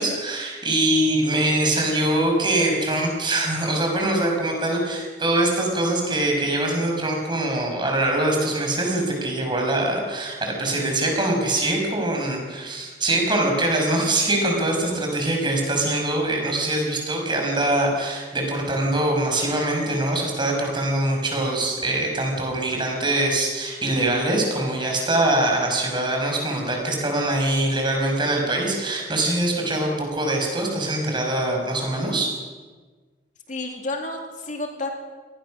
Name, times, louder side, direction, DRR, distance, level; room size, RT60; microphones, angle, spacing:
voice 1, 0.0-32.3, right 1 dB, 25° right, 1 dB, 6.0 m, -23 dB
voice 2, 33.5-34.9, left 2 dB, 45° left, 3 dB, 2.6 m, -31 dB
26.0 x 19.0 x 6.4 m, 1.4 s
head